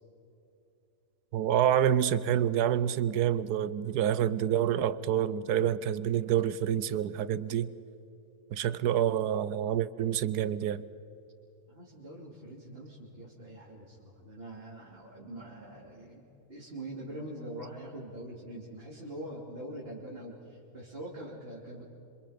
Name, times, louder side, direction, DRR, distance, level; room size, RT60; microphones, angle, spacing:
voice 1, 1.3-7.7 8.5-10.8, right 10 dB, 80° right, 1.3 m, -27 dB
voice 2, 11.7-16.2 16.5-21.8, right 1 dB, 35° right, 3.3 m, -43 dB
27.5 x 26.0 x 5.1 m
omnidirectional pair, 1.7 m